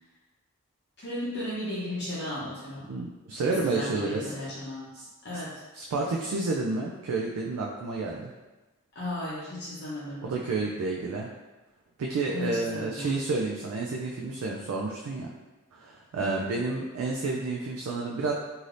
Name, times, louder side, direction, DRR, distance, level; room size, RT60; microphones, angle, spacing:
voice 1, 1.0-2.9 3.4-4.9 5.2-5.6 8.9-10.4 12.3-13.2 16.2-16.6, left 1 dB, 50° left, -9 dB, 0.7 m, -35 dB
voice 2, 2.9-4.3 4.9-5.1 5.7-8.3 10.2-11.3 12.0-15.3 15.7-18.3, right 3 dB, 80° right, -1 dB, 0.4 m, -30 dB
3.2 x 2.7 x 2.5 m, 1.1 s
head